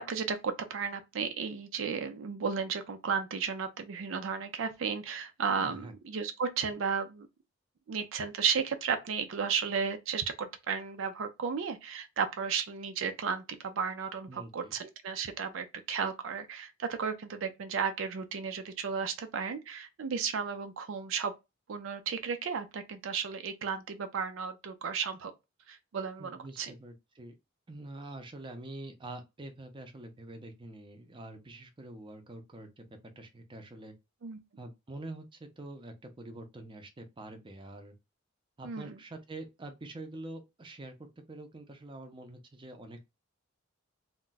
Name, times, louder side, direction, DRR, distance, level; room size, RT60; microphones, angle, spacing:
voice 1, 0.0-7.3 7.9-21.3 21.7-25.3 25.7-26.7 34.2-34.4 38.6-38.9, right 6 dB, 75° right, 0.4 m, -34 dB
voice 2, 5.6-5.9 14.3-14.7 26.2-27.3 27.7-33.9 34.6-38.0 38.6-43.0, right 2 dB, 25° right, 0.5 m, -46 dB
2.3 x 2.1 x 3.8 m
head